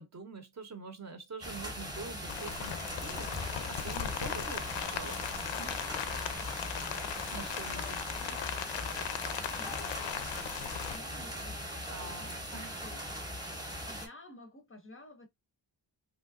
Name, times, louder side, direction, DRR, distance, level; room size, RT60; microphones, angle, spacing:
voice 1, 0.0-5.2 5.6-6.0 7.3-8.0 8.3-8.4 11.9-12.8, right 3 dB, 40° right, 0.6 m, -46 dB
sound 1, 1.4-14.1, equal, 10° right, 0.8 m, -40 dB
Rain, 2.3-11.0, left 9 dB, 75° left, 0.5 m, -38 dB
voice 2, 7.7-8.5 9.5-10.4 10.7-12.4 12.8-13.0 13.9-15.3, left 2 dB, 30° left, 0.5 m, -52 dB
3.3 x 2.7 x 2.4 m
wide cardioid pair, 170°, 45 cm